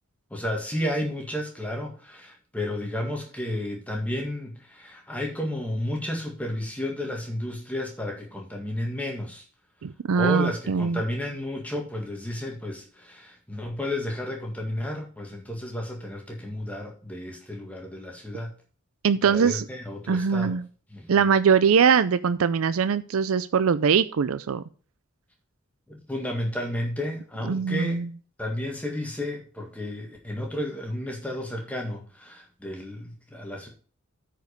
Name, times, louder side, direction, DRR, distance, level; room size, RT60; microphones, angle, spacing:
voice 1, 0.3-9.4 10.1-18.5 19.2-20.6 20.9-21.3 25.9-28.1 28.4-33.7, left 1 dB, 5° left, 1 dB, 1.7 m, -32 dB
voice 2, 9.8-11.0 19.0-19.6 20.1-20.7 21.1-24.6 27.5-28.1, right 6 dB, 75° right, 14 dB, 0.4 m, -22 dB
9.3 x 5.2 x 5.2 m, 0.40 s
head